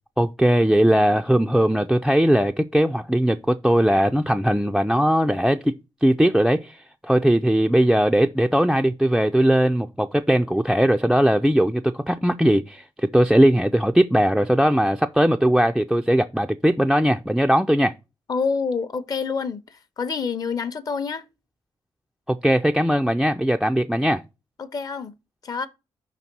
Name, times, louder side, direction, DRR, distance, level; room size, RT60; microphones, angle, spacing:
voice 1, 0.2-5.7 6.0-17.9 22.3-24.2, equal, ahead, 0.3 m, -19 dB
voice 2, 18.3-21.2 24.6-25.1 25.4-25.7, left 5 dB, 40° left, 0.6 m, -27 dB
5.2 x 4.1 x 5.8 m
wide cardioid pair, 145°, 10 cm